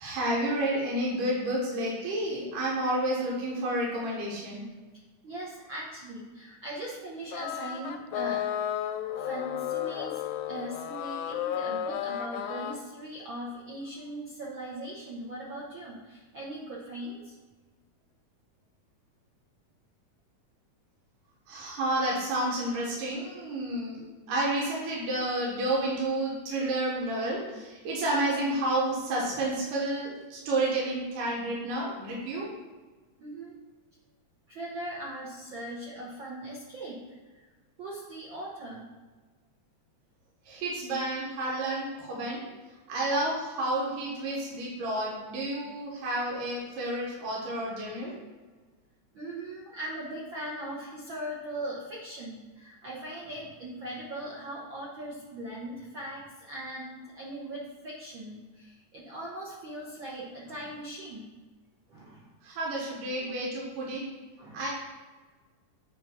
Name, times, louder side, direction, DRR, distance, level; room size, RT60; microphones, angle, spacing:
voice 1, 0.0-4.6 21.5-32.5 40.4-42.5 42.9-48.1 62.4-64.0 64.5-64.7, right 1 dB, 90° right, -4 dB, 3.0 m, -30 dB
voice 2, 5.2-8.4 9.2-17.4 33.2-33.6 34.5-37.0 37.2-37.5 37.8-38.9 49.1-61.2 61.9-62.3 64.4-64.6, right 1 dB, 70° right, -5 dB, 1.1 m, -40 dB
sound 1, 7.3-12.8, left 10 dB, 80° left, 1.8 m, -33 dB
9.1 x 3.3 x 5.8 m, 1.3 s
omnidirectional pair, 3.8 m